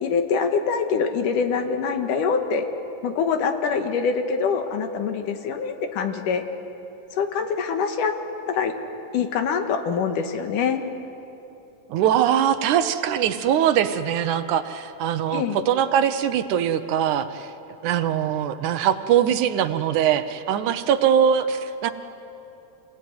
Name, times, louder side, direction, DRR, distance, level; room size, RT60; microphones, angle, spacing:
voice 1, 0.0-2.7 3.0-6.4 7.1-8.2 8.5-8.7 9.1-10.8 15.3-15.6, left 6 dB, 80° left, 6 dB, 3.0 m, -24 dB
voice 2, 11.9-17.5 17.8-21.9, right 9 dB, 75° right, 10 dB, 2.3 m, -22 dB
27.5 x 19.5 x 9.4 m, 2.9 s
omnidirectional pair, 3.7 m